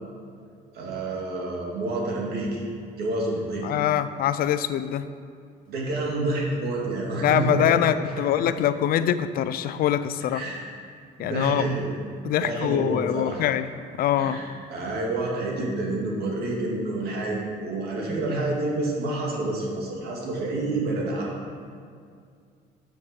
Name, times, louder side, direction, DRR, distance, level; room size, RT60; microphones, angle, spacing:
voice 1, 0.7-2.6 3.0-3.7 5.7-7.7 10.3-10.7 11.2-11.9 12.4-13.4 14.2-21.3, right 2 dB, 70° right, -3 dB, 2.2 m, -28 dB
voice 2, 3.6-5.1 7.2-10.4 11.2-11.7 12.2-13.7 14.0-14.4, left 11 dB, 60° left, 13 dB, 0.4 m, -24 dB
7.2 x 5.9 x 6.3 m, 2.2 s
cardioid pair, 110°, 17 cm